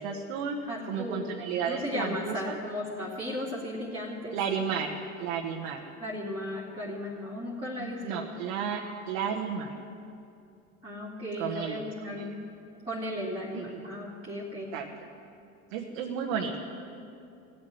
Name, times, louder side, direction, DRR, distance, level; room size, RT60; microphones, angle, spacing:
voice 1, 0.0-0.6 0.8-2.6 4.3-4.9 5.2-5.8 7.8-8.8 9.1-9.7 11.4-12.3 13.7-13.8 14.7-14.9 15.7-16.6, right 7 dB, 75° right, 0 dB, 1.3 m, -33 dB
voice 2, 0.7-1.2 1.6-4.4 6.0-8.3 10.8-12.4 12.8-14.7, left 1 dB, 15° right, -6 dB, 2.8 m, -35 dB
17.0 x 7.8 x 9.3 m, 2.6 s
hypercardioid pair, 80°, 41 cm